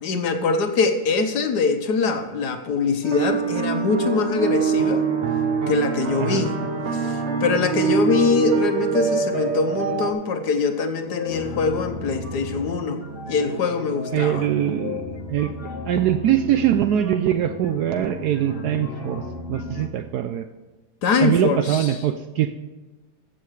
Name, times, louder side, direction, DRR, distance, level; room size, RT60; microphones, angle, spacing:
voice 1, 0.0-5.0 5.7-6.5 6.9-14.5 21.0-21.9, left 4 dB, 65° left, 7 dB, 1.4 m, -23 dB
sound 1, 3.0-10.1, right 5 dB, 45° right, 1.0 m, -24 dB
sound 2, 11.0-19.9, left 3 dB, 35° left, 1.3 m, -34 dB
voice 2, 14.1-15.0 15.3-19.2 19.5-20.4 21.2-22.5, right 11 dB, 75° right, 8 dB, 0.9 m, -22 dB
14.0 x 7.7 x 4.7 m, 1.2 s
omnidirectional pair, 2.1 m